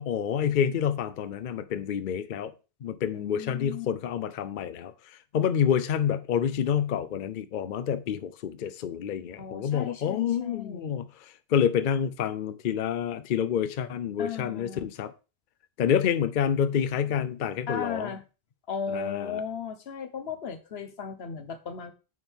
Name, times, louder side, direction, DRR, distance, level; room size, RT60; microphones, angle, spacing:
voice 1, 0.0-2.5 2.8-4.9 5.3-11.1 11.5-15.1 15.8-18.1 18.9-19.4, left 8 dB, 60° left, 0.7 m, -28 dB
voice 2, 3.1-3.9 9.4-11.0 14.2-14.9 17.7-18.2 18.7-21.9, left 6 dB, 80° left, 1.2 m, -36 dB
9.3 x 4.5 x 3.5 m
omnidirectional pair, 1.0 m